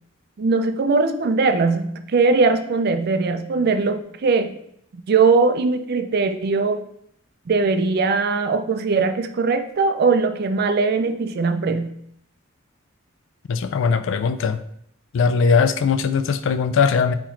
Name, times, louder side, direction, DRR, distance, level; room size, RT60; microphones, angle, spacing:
voice 1, 0.4-4.5 4.9-6.8 7.5-12.0, right 4 dB, 50° right, 9 dB, 0.4 m, -20 dB
voice 2, 13.5-14.6 15.1-17.1, left 5 dB, 65° left, 11 dB, 0.3 m, -20 dB
3.9 x 3.0 x 4.3 m, 0.71 s
head